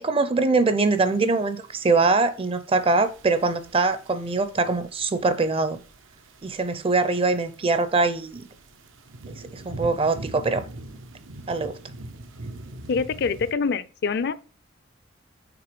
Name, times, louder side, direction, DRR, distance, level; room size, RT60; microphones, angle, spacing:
voice 1, 0.0-5.8 6.4-8.5 9.5-10.6 11.5-11.7, right 3 dB, 30° right, 0.5 m, -23 dB
sound 1, 0.8-13.5, right 2 dB, 90° right, 0.8 m, -43 dB
voice 2, 12.9-14.3, left 5 dB, 55° left, 0.4 m, -25 dB
5.9 x 3.7 x 5.1 m
head